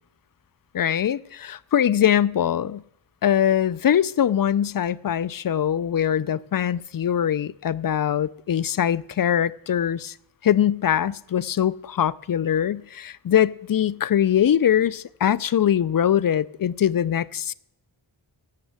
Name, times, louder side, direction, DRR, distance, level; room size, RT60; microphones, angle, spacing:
voice 1, 0.7-2.8 3.2-10.1 10.4-17.5, left 9 dB, 45° left, 0.5 m, -22 dB
9.7 x 7.2 x 8.0 m
cardioid pair, 50°, 49 cm